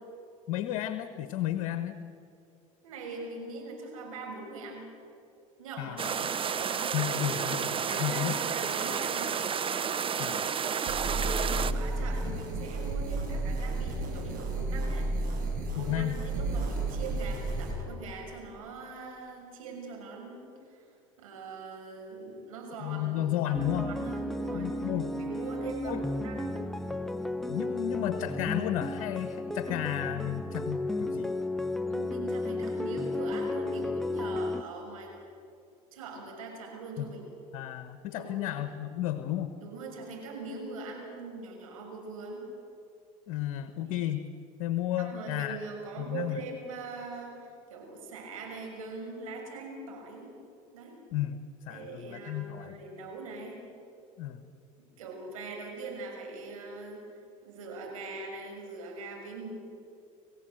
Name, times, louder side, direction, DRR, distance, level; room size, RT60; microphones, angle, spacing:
voice 1, 0.5-1.9 5.8-6.1 6.9-8.3 10.2-10.4 15.7-16.2 22.8-23.9 24.5-25.1 25.8-26.0 27.5-31.3 37.0-37.1 37.5-39.5 43.3-44.3 44.6-45.6 46.0-46.4 51.1-51.4 51.7-52.8 54.2-54.4, left 13 dB, 70° left, 10 dB, 1.2 m, -33 dB
voice 2, 2.8-4.9 5.6-6.1 7.8-9.4 10.8-15.1 15.7-20.8 21.2-24.8 25.1-26.6 31.9-35.2 35.9-37.3 38.1-38.6 39.6-42.5 43.8-43.9 45.0-50.3 50.7-51.0 51.7-53.6 54.8-57.0 57.4-59.5, right 3 dB, 85° right, 1 dB, 6.3 m, -42 dB
sound 1, 6.0-11.7, right 7 dB, 30° right, 1.0 m, -31 dB
sound 2, 10.9-17.7, right 2 dB, 55° right, 7.2 m, -32 dB
sound 3, 23.5-34.6, left 2 dB, ahead, 1.0 m, -33 dB
28.5 x 15.5 x 7.8 m, 2.5 s
hypercardioid pair, 80°, 17 cm